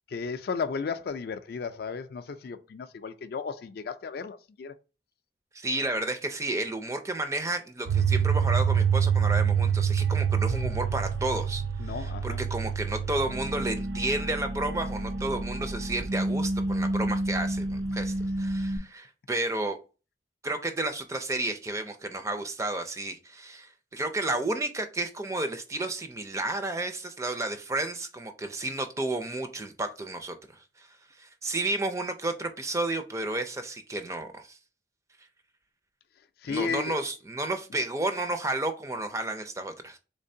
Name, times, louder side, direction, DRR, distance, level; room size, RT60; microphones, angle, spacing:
voice 1, 0.1-4.7 11.8-12.5 36.4-37.0, left 5 dB, 55° left, 0.3 m, -34 dB
voice 2, 5.5-19.8 20.4-30.9 31.2-34.6 36.5-40.0, right 2 dB, 15° right, 0.4 m, -32 dB
sound 1, 7.9-18.8, right 5 dB, 75° right, 0.5 m, -27 dB
3.6 x 3.2 x 2.7 m
head